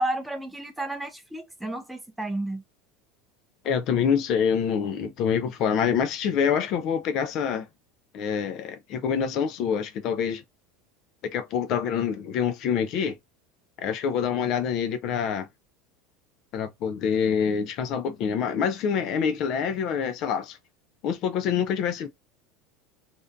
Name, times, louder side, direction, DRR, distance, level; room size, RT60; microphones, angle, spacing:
voice 1, 0.0-2.6, right 1 dB, 5° right, 0.6 m, -31 dB
voice 2, 3.6-7.7 8.1-10.4 11.3-13.2 13.8-15.5 16.5-20.6 21.0-22.1, left 7 dB, 55° left, 0.5 m, -26 dB
2.5 x 2.2 x 2.4 m
supercardioid pair, 110°, 0 cm